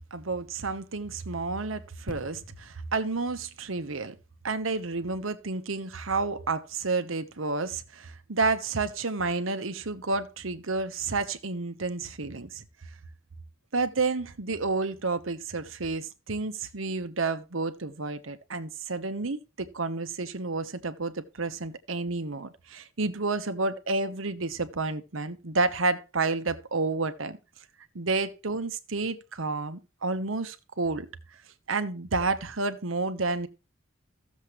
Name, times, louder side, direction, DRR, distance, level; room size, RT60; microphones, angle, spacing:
voice 1, 0.1-4.2 4.4-12.6 13.7-27.4 27.9-31.1 31.7-33.5, right 3 dB, 80° right, 1.1 m, -30 dB
sound 1, 2.1-5.7 6.3-6.4, left 2 dB, 45° left, 0.6 m, -47 dB
15.0 x 7.3 x 3.1 m
head